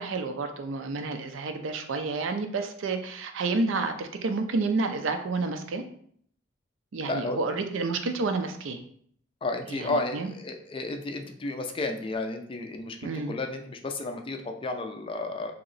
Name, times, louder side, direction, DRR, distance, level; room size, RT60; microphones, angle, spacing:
voice 1, 0.0-5.8 6.9-8.8 9.7-10.3 13.0-13.3, right 3 dB, 75° right, 7 dB, 0.5 m, -30 dB
voice 2, 7.0-7.6 9.4-15.5, left 2 dB, 25° left, 5 dB, 0.4 m, -32 dB
3.0 x 2.9 x 3.9 m, 0.63 s
head